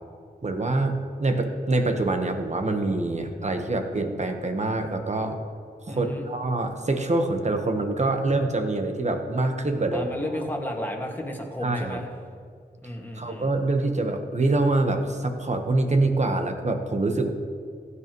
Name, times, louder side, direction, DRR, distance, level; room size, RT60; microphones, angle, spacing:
voice 1, 0.4-5.4 5.9-10.1 11.6-12.0 13.2-17.3, right 2 dB, 40° right, 5 dB, 1.3 m, -25 dB
voice 2, 5.9-6.3 9.9-12.1 12.8-13.5, equal, 10° left, 0 dB, 2.0 m, -33 dB
16.0 x 9.8 x 3.2 m, 2.2 s
cardioid pair, 50°, 18 cm